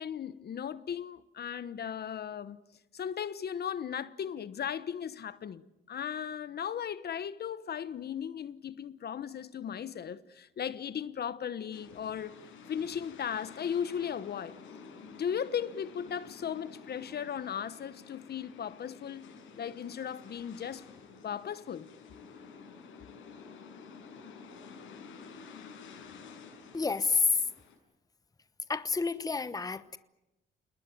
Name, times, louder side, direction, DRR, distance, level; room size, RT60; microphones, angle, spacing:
voice 1, 0.0-2.6 2.9-14.6 15.2-19.3 19.6-20.8 21.2-21.9, left 8 dB, 55° left, 1.2 m, -37 dB
sound 1, 11.7-27.8, left 5 dB, 85° left, 7.0 m, -51 dB
voice 2, 26.7-27.4 28.7-30.0, left 4 dB, 20° left, 1.1 m, -29 dB
28.0 x 20.5 x 9.5 m
cardioid pair, 90°, 20 cm